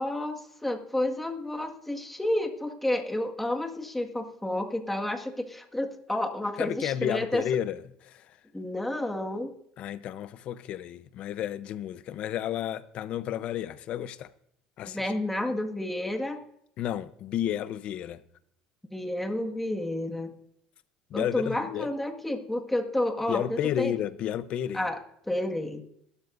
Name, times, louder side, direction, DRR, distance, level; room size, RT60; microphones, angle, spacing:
voice 1, 0.0-7.4 8.5-9.5 14.9-16.4 18.9-20.3 21.1-23.9 24.7-25.0 25.2-25.8, left 1 dB, 5° left, 1.8 m, -30 dB
voice 2, 6.6-8.4 9.8-14.3 14.8-15.1 16.8-18.2 21.1-21.9 23.3-24.9, left 11 dB, 55° left, 0.8 m, -32 dB
22.0 x 12.5 x 2.6 m
supercardioid pair, 110°, 2 cm